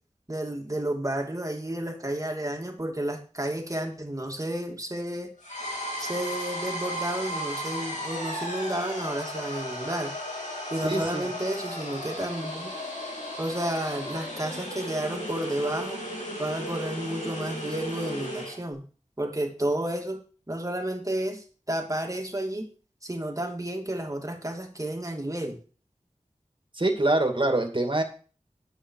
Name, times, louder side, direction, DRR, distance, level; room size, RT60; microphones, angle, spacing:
voice 1, 0.3-5.3 6.0-10.1 10.7-12.7 13.4-16.0 16.4-18.8 19.2-22.7 23.0-25.6, right 1 dB, 25° right, 2 dB, 2.7 m, -31 dB
sound 1, 5.4-18.6, equal, 80° left, 3.9 m, -35 dB
voice 2, 10.8-11.3 26.7-28.0, right 2 dB, 40° right, 4 dB, 2.5 m, -24 dB
10.5 x 8.2 x 4.7 m, 0.38 s
wide cardioid pair, 45°, 13 cm